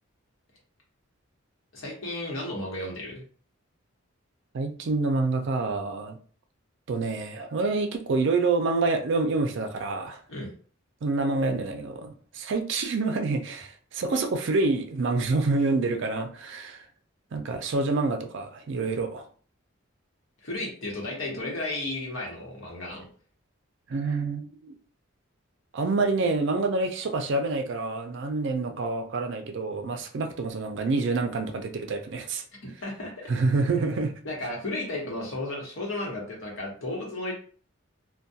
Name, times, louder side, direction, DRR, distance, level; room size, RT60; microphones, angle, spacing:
voice 1, 1.7-3.2 10.3-10.5 20.4-23.1 32.6-33.1 34.2-37.3, left 2 dB, 70° left, -2 dB, 1.0 m, -33 dB
voice 2, 4.5-6.2 6.9-10.2 11.0-16.8 17.3-19.3 23.9-24.8 25.7-32.4 33.3-34.1, right 3 dB, 60° right, 5 dB, 0.4 m, -27 dB
2.3 x 2.2 x 2.7 m, 0.43 s
head